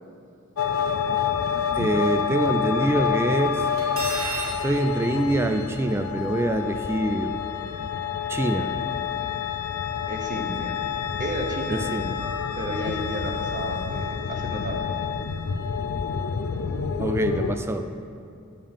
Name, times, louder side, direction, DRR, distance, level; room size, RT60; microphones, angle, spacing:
sound 1, 0.6-17.6, left 7 dB, 70° left, 0.4 m, -28 dB
voice 1, 1.7-3.6 4.6-7.3 8.3-8.7 11.7-12.2 17.0-17.9, right 1 dB, 10° right, 7 dB, 0.3 m, -25 dB
Cutlery silverware, 3.8-4.6, right 3 dB, 75° right, 1.9 m, -30 dB
voice 2, 10.1-10.8 11.2-11.8 12.5-15.0, right 1 dB, 40° right, 2 dB, 0.8 m, -32 dB
7.2 x 6.6 x 3.6 m, 2.4 s
head